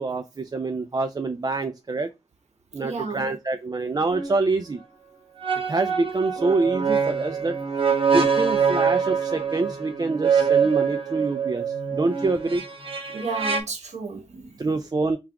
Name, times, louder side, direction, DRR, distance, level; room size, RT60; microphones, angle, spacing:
voice 1, 0.0-2.1 2.7-4.8 5.7-7.6 8.1-12.6 14.6-15.2, right 3 dB, 35° right, 0.3 m, -26 dB
voice 2, 2.7-3.3 13.1-14.7, right 4 dB, 80° right, 0.9 m, -32 dB
sound 1, 4.1-4.3 5.4-13.6, right 6 dB, 50° right, 0.9 m, -24 dB
3.5 x 2.4 x 4.5 m
wide cardioid pair, 70°, 11 cm